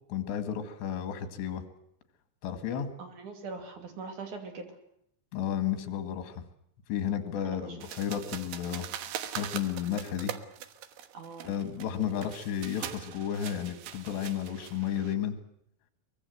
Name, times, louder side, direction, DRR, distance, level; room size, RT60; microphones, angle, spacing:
voice 1, 0.1-1.6 2.4-2.9 5.3-6.4 6.9-8.9 9.3-10.3 11.4-15.4, left 9 dB, 65° left, 8 dB, 3.9 m, -32 dB
voice 2, 3.0-4.7 7.4-7.8 11.1-11.5, right 4 dB, 45° right, 5 dB, 3.6 m, -42 dB
sound 1, 7.8-15.1, right 10 dB, 70° right, 2.7 m, -42 dB
23.5 x 21.5 x 7.9 m, 0.74 s
omnidirectional pair, 5.6 m